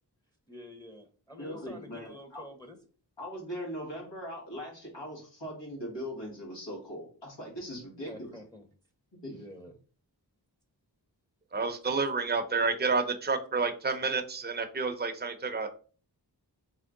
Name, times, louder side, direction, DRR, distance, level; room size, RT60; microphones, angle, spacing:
voice 1, 0.5-2.8 8.1-8.6 9.3-9.7, left 1 dB, 10° left, 4 dB, 0.8 m, -48 dB
voice 2, 1.4-2.4 3.2-8.3 9.1-9.4, equal, 90° left, -4 dB, 2.1 m, -40 dB
voice 3, 11.5-15.7, right 4 dB, 25° right, 7 dB, 0.6 m, -29 dB
3.5 x 3.2 x 3.7 m, 0.39 s
wide cardioid pair, 45°, 42 cm